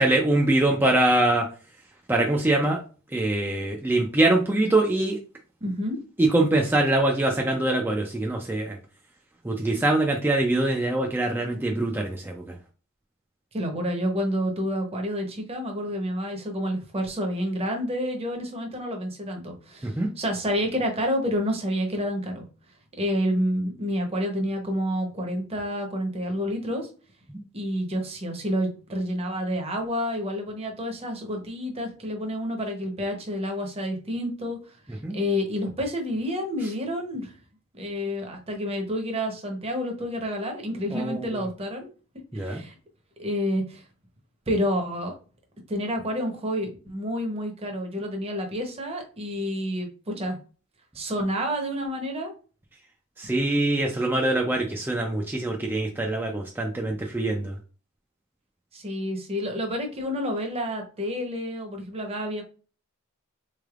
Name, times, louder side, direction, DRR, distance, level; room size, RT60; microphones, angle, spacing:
voice 1, 0.0-1.5 2.1-2.8 3.1-5.2 6.2-8.8 9.4-12.5 19.8-20.1 35.0-35.1 40.9-41.4 42.3-42.6 53.2-57.5, right 2 dB, 10° right, 0 dB, 0.4 m, -23 dB
voice 2, 5.6-6.0 13.5-22.4 23.0-26.9 27.5-34.6 34.9-37.3 37.7-41.9 42.3-42.7 43.2-43.8 44.5-45.1 45.7-50.4 50.9-52.3 58.7-62.4, equal, 30° right, 3 dB, 0.8 m, -29 dB
3.7 x 3.3 x 2.4 m, 0.37 s
head